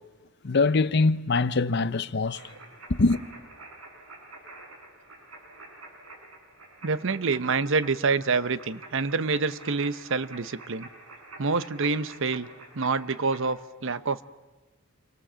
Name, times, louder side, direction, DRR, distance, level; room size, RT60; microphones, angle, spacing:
voice 1, 0.4-2.4 2.9-3.2, left 3 dB, 55° left, 0.8 m, -23 dB
Shortwave Beep, 2.3-13.4, right 2 dB, 90° right, 7.1 m, -48 dB
voice 2, 6.8-10.9 11.4-12.5 12.7-14.2, right 4 dB, 65° right, 0.8 m, -27 dB
28.5 x 24.0 x 7.4 m
head